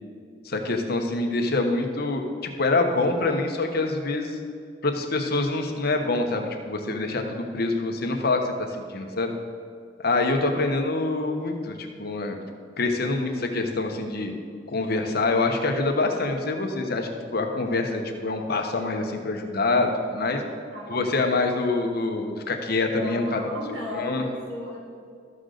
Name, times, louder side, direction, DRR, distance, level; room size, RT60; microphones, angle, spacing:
voice 1, 0.4-4.4 4.8-9.3 10.0-12.4 12.8-14.3 14.7-20.4 20.9-23.4 23.9-24.2, left 3 dB, 60° left, 4 dB, 0.9 m, -25 dB
voice 2, 20.7-21.1 22.9-24.8, left 1 dB, 80° right, -3 dB, 2.2 m, -35 dB
13.0 x 6.5 x 3.9 m, 2.2 s
head